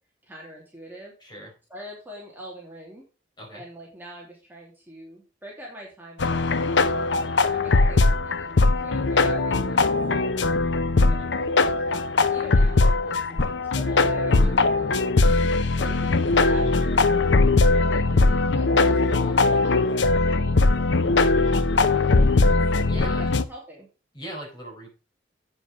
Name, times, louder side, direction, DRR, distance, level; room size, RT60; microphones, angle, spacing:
voice 1, 0.2-1.1 1.7-3.1 3.5-6.5 7.1-15.1 15.8-17.1 17.7-21.6 21.9-22.5 22.9-23.9, right 1 dB, 10° right, -3 dB, 2.8 m, -44 dB
voice 2, 1.2-1.5 3.4-3.6 11.1-11.3 16.6-16.8 22.9-23.3 24.1-24.9, right 1 dB, 25° left, -1 dB, 4.9 m, -39 dB
sound 1, 6.2-23.4, left 3 dB, 70° left, 0.7 m, -20 dB
8.7 x 7.1 x 4.9 m, 0.33 s
head